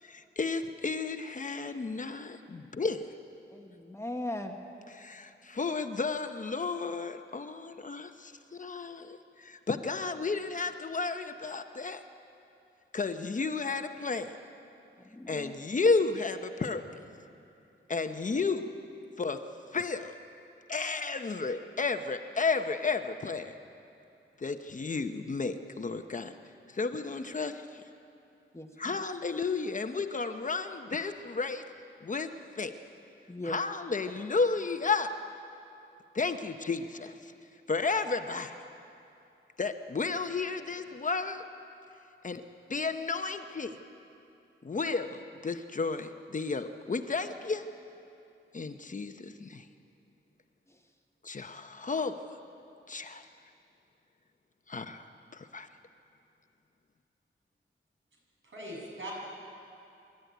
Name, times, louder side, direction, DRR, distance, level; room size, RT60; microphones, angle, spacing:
voice 1, 0.0-3.1 5.0-12.0 12.9-14.4 15.3-16.9 17.9-18.7 19.2-20.2 20.7-23.5 24.4-26.3 26.7-27.8 28.8-31.6 32.0-32.8 33.4-35.1 36.1-37.3 37.7-38.6 39.6-41.4 42.2-42.4 42.7-43.8 44.6-47.7 48.5-49.7 51.2-52.2 52.9-53.3 54.7-55.7, left 4 dB, 40° left, 7 dB, 0.9 m, -32 dB
voice 2, 3.5-4.5 15.0-15.5 28.5-29.0 33.3-33.6 50.7-50.8, left 1 dB, 15° left, 3 dB, 1.1 m, -39 dB
voice 3, 58.4-59.1, right 1 dB, 65° right, -3 dB, 7.4 m, -41 dB
26.0 x 13.0 x 9.3 m, 2.7 s
wide cardioid pair, 130°, 21 cm